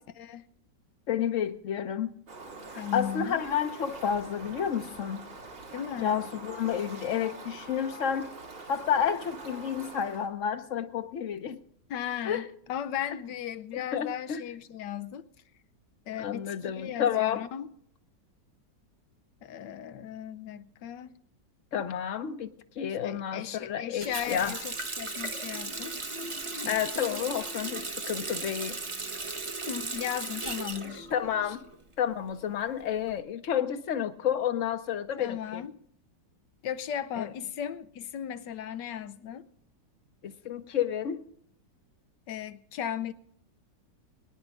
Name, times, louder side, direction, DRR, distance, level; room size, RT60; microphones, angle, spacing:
voice 1, 1.1-2.1 2.9-5.3 6.0-8.3 8.7-11.6 12.2-12.5 13.7-14.4 16.2-17.4 21.7-24.6 26.7-28.8 31.1-31.6 32.0-35.7 37.2-37.3 40.2-41.2, left 8 dB, 55° left, 1.1 m, -30 dB
Fowl, 2.3-10.3, right 3 dB, 85° right, 3.2 m, -44 dB
voice 2, 2.8-3.4 5.7-6.2 11.9-15.3 16.1-17.7 19.4-21.1 22.8-26.0 26.6-27.3 29.7-31.1 35.2-35.7 36.6-39.5 42.3-43.1, left 10 dB, 80° left, 1.4 m, -36 dB
Water tap faucet, 24.0-31.7 32.1-33.1, right 3 dB, 30° right, 0.5 m, -36 dB
23.0 x 10.0 x 3.7 m
omnidirectional pair, 1.9 m